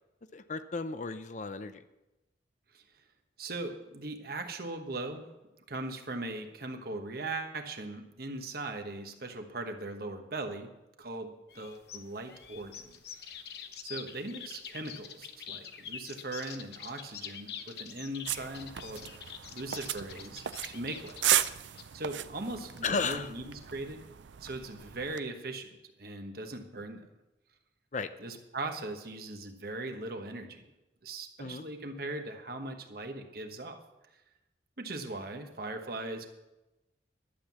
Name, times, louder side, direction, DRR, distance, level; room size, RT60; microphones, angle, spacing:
voice 1, 0.3-1.8 22.8-23.3 27.9-28.1 31.4-31.6, left 4 dB, 40° left, 11 dB, 0.5 m, -34 dB
voice 2, 3.4-5.3 5.7-10.7 11.0-13.5 13.8-21.2 21.9-24.0 24.4-25.7 26.0-27.1 28.2-30.7 31.0-33.8 34.8-36.3, right 2 dB, 55° right, 5 dB, 1.2 m, -39 dB
sound 1, 11.5-23.9, left 8 dB, 60° left, 0.9 m, -46 dB
sound 2, 18.3-25.2, right 12 dB, 80° right, 0.5 m, -35 dB
12.0 x 7.6 x 7.2 m, 1.0 s
head